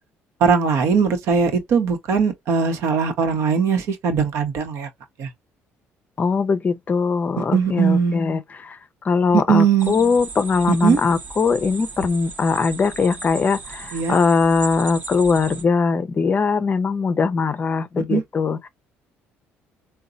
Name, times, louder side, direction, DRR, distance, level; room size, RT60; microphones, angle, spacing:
voice 1, 0.4-4.9 5.2-5.3 7.4-8.2 9.3-9.9 10.8-11.0 13.9-14.2 18.0-18.2, right 6 dB, 75° right, 0.9 m, -20 dB
voice 2, 6.2-8.8 9.0-18.6, left 5 dB, 35° left, 0.5 m, -21 dB
sound 1, 9.8-15.6, right 4 dB, 45° right, 0.9 m, -36 dB
3.9 x 2.2 x 2.5 m
cardioid pair, 90°, 5 cm